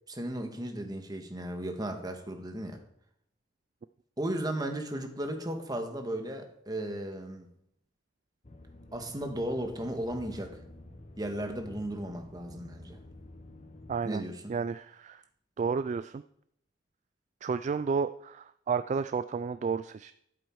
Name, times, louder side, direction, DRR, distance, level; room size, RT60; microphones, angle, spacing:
voice 1, 0.1-2.8 4.2-7.5 8.9-10.6 11.2-13.0 14.0-14.5, right 1 dB, 20° right, 5 dB, 1.6 m, -35 dB
sound 1, 8.4-14.0, left 2 dB, 40° left, 1.1 m, -50 dB
voice 2, 13.9-14.2 14.5-15.2 15.6-16.2 17.4-20.1, right 5 dB, 40° right, 13 dB, 0.3 m, -31 dB
13.0 x 7.7 x 4.7 m, 0.71 s
head